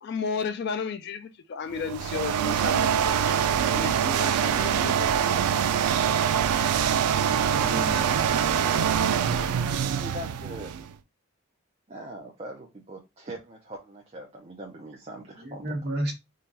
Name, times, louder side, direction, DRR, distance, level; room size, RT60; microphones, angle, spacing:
voice 1, 0.0-3.3 3.6-6.2, left 5 dB, 50° left, 0.3 m, -34 dB
sound 1, 1.7-10.9, right 8 dB, 90° right, 0.3 m, -24 dB
voice 2, 7.2-8.8 15.4-16.1, right 1 dB, 45° right, 1.2 m, -34 dB
voice 3, 9.7-10.8 11.9-15.6, right 1 dB, 30° right, 0.5 m, -41 dB
3.8 x 2.3 x 2.6 m
head